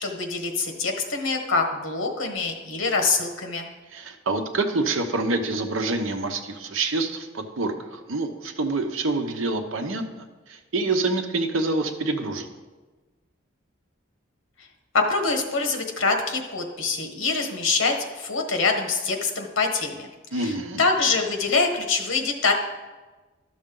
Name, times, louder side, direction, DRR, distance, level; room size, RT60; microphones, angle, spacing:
voice 1, 0.0-3.7 14.9-20.1 20.4-20.5 20.8-22.5, left 4 dB, 85° left, 4 dB, 1.2 m, -24 dB
voice 2, 3.9-12.5 20.3-20.8, right 3 dB, 85° right, 6 dB, 0.9 m, -27 dB
12.0 x 6.4 x 3.8 m, 1.3 s
head